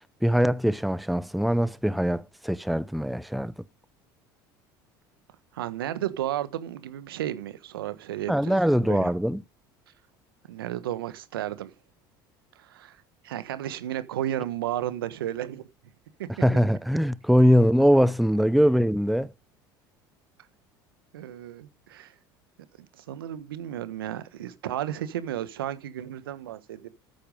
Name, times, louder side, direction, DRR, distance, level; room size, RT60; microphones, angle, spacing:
voice 1, 0.2-3.5 8.3-9.4 16.4-19.3, equal, ahead, 0.6 m, -22 dB
voice 2, 5.5-8.6 8.9-9.1 10.5-11.7 12.5-13.0 13.2-15.7 16.2-16.4 21.1-22.1 23.0-26.9, right 12 dB, 90° right, 1.3 m, -33 dB
13.5 x 8.9 x 5.3 m
hypercardioid pair, 80°, 12 cm